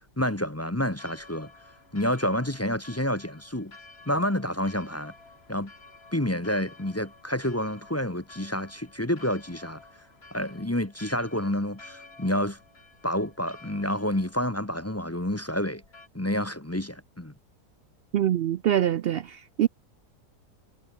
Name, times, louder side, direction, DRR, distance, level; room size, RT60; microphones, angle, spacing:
voice 1, 0.2-1.5 1.9-3.7 4.1-5.1 5.5-5.7 6.1-9.8 10.3-12.6 13.0-15.8 16.1-17.3, left 1 dB, 10° left, 1.0 m, -29 dB
Church bell, 1.0-16.1, left 3 dB, 40° left, 2.7 m, -52 dB
voice 2, 18.1-19.7, right 11 dB, 85° right, 0.5 m, -24 dB
omnidirectional pair, 1.6 m